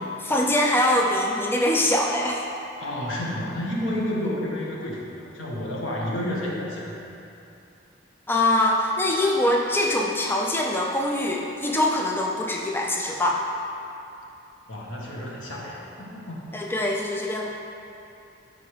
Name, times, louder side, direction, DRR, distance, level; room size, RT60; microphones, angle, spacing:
voice 1, 0.2-2.4 8.3-13.4 16.5-17.5, left 1 dB, 10° left, -1 dB, 0.4 m, -23 dB
voice 2, 2.8-5.1 5.3-7.0 14.7-16.4, left 1 dB, 90° left, -4 dB, 1.5 m, -30 dB
12.0 x 4.8 x 3.4 m, 2.7 s
head